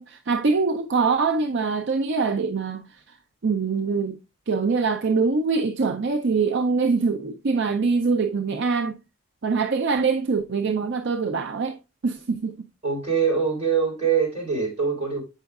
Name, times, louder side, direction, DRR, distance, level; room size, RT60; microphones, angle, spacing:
voice 1, 0.0-2.8 3.4-4.2 4.5-8.9 9.4-11.8 12.0-12.5, right 4 dB, 50° right, 0.5 m, -23 dB
voice 2, 12.8-15.2, right 6 dB, 25° right, 3.6 m, -23 dB
7.9 x 5.5 x 2.3 m
head